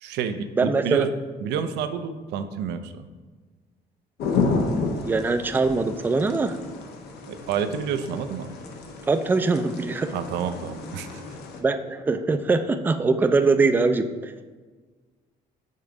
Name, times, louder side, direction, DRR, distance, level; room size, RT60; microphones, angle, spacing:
voice 1, 0.0-1.1 1.4-3.0 7.3-8.5 10.1-11.2, right 7 dB, 85° right, 10 dB, 0.5 m, -29 dB
voice 2, 0.6-1.1 5.0-6.6 9.1-10.1 11.6-14.3, right 3 dB, 10° right, 9 dB, 0.3 m, -22 dB
sound 1, 4.2-11.6, left 4 dB, 75° left, 0.8 m, -31 dB
5.4 x 3.8 x 4.7 m, 1.4 s
cardioid pair, 110°, 17 cm